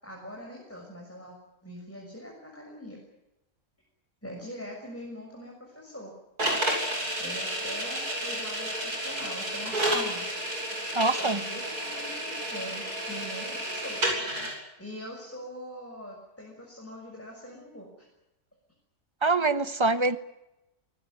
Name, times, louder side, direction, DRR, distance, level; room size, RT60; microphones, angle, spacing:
voice 1, 0.0-1.4 1.6-3.0 4.2-6.1 7.2-10.2 11.2-14.0 14.8-18.1, equal, 10° left, -1 dB, 6.4 m, -43 dB
sound 1, 6.4-14.5, right 1 dB, 90° right, 8.6 m, -31 dB
voice 2, 10.9-11.4 19.2-20.2, right 3 dB, 20° right, 12 dB, 1.1 m, -24 dB
25.5 x 19.5 x 10.0 m, 0.94 s
omnidirectional pair, 1.6 m